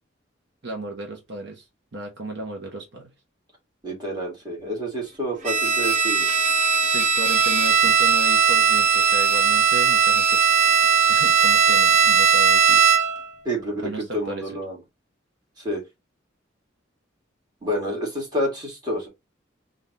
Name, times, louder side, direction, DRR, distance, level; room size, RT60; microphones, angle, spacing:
voice 1, 0.6-1.7 1.9-3.1 6.8-10.4 11.1-12.8 13.8-14.4, right 2 dB, 60° right, 1.0 m, -35 dB
voice 2, 3.8-6.3 13.4-14.8 15.6-15.8 17.6-19.1, equal, 20° right, 2.1 m, -28 dB
Bowed string instrument, 5.4-13.3, right 6 dB, 40° right, 0.7 m, -18 dB
3.7 x 2.6 x 4.2 m
head